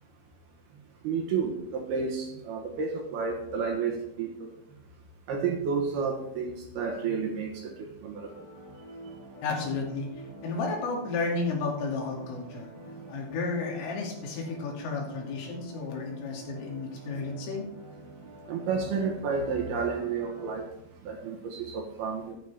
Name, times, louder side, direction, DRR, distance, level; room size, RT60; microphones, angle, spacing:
voice 1, 1.0-4.5 5.3-8.3 18.5-20.7 21.1-22.3, right 5 dB, 65° right, 1 dB, 3.0 m, -31 dB
sound 1, 8.3-20.5, right 1 dB, 10° left, 1.5 m, -47 dB
voice 2, 9.4-10.1 10.4-12.7 13.1-17.7, left 3 dB, 90° left, -1 dB, 5.4 m, -32 dB
12.5 x 11.5 x 3.6 m, 0.80 s
omnidirectional pair, 5.6 m